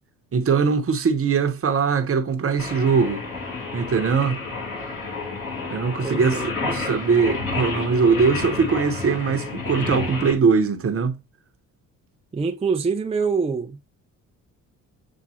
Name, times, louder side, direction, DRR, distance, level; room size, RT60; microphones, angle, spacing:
voice 1, 0.3-3.3 3.7-4.4 5.7-11.2, right 5 dB, 40° right, 1.0 m, -21 dB
Singing, 2.6-10.3, left 3 dB, 45° left, 3.1 m, -30 dB
voice 2, 6.0-6.9 12.3-13.9, right 5 dB, 20° right, 0.5 m, -26 dB
7.3 x 2.5 x 2.8 m
cardioid pair, 80°, 33 cm